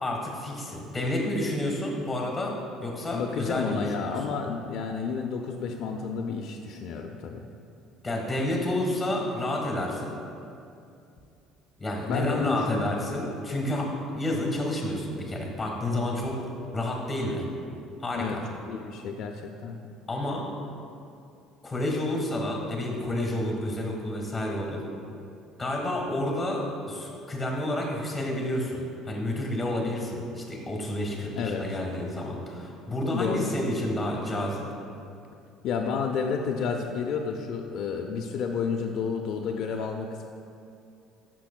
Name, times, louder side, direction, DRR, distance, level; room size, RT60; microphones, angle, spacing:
voice 1, 0.0-2.6 2.8-4.2 8.0-10.1 11.8-16.3 16.7-17.5 18.0-18.4 20.1-20.5 21.6-24.8 25.6-34.7, left 1 dB, 10° left, 0 dB, 1.2 m, -30 dB
voice 2, 3.1-7.5 12.1-12.9 18.1-18.4 18.6-19.8 31.4-31.7 33.1-33.5 35.6-40.2, left 5 dB, 55° left, 2 dB, 0.4 m, -31 dB
10.5 x 6.0 x 2.2 m, 2.6 s
cardioid pair, 150°, 0 cm